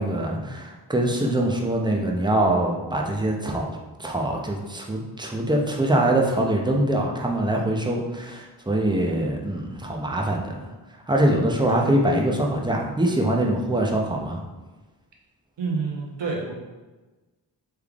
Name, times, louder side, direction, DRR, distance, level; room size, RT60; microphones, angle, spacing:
voice 1, 0.0-3.7 4.0-10.7 11.1-14.4, right 1 dB, 10° right, 0 dB, 0.4 m, -23 dB
voice 2, 15.6-16.5, right 4 dB, 75° right, -1 dB, 0.9 m, -29 dB
3.5 x 3.2 x 2.3 m, 1.2 s
wide cardioid pair, 80°, 44 cm